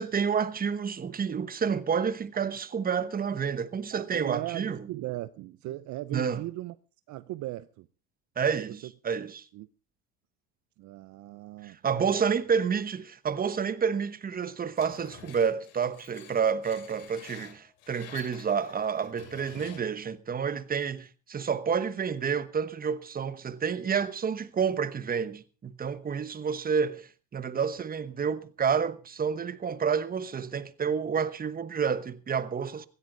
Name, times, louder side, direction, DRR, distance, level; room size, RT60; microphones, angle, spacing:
voice 1, 0.0-4.9 6.1-6.4 8.4-9.5 11.6-32.9, right 6 dB, 25° right, 1.1 m, -29 dB
voice 2, 3.9-6.8 7.1-7.9 8.8-8.9 9.5-9.7 10.8-12.3 19.5-19.7, right 17 dB, 50° right, 0.7 m, -38 dB
Screech, 14.8-20.0, left 9 dB, 70° left, 3.4 m, -50 dB
16.5 x 15.5 x 3.9 m
supercardioid pair, 100°, 37 cm